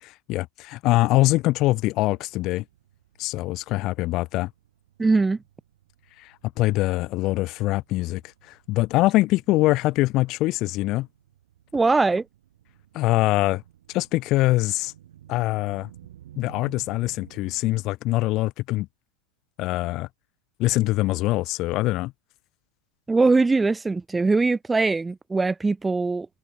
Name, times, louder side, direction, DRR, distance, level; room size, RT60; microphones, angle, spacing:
voice 1, 0.0-2.6 3.2-4.5 6.2-8.2 8.5-11.1 12.9-13.6 13.9-14.9 15.3-15.9 16.4-18.9 19.6-20.1 20.6-22.1, left 19 dB, 45° left, 0.4 m, -23 dB
sound 1, 1.9-17.6, right 12 dB, 75° right, 3.8 m, -53 dB
voice 2, 5.0-5.4 11.7-12.2 23.1-26.3, right 3 dB, 10° right, 0.8 m, -21 dB
hypercardioid pair, 105°, 0 cm